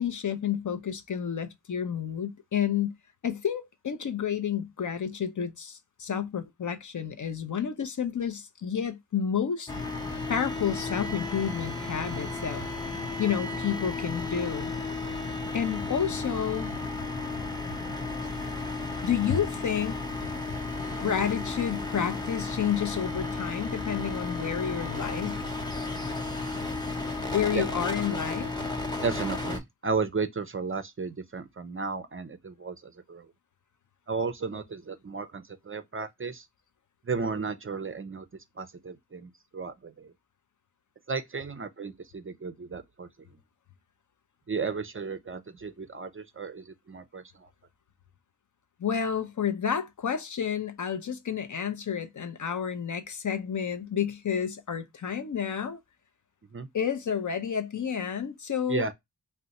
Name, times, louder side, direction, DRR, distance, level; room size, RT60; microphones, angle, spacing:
voice 1, 0.0-3.0 3.2-9.7 10.3-12.6 13.2-14.7 15.5-16.7 19.0-20.0 20.9-25.4 27.3-28.5 48.8-55.8 56.7-58.9, left 8 dB, 50° left, 0.5 m, -30 dB
sound 1, 9.7-29.6, left 3 dB, 10° left, 0.7 m, -33 dB
voice 2, 29.0-33.3 34.1-36.5 37.0-38.3 38.6-40.1 41.1-43.1 44.5-47.5 56.5-56.7 58.7-58.9, right 4 dB, 35° right, 0.4 m, -34 dB
2.5 x 2.1 x 3.9 m
cardioid pair, 50°, 41 cm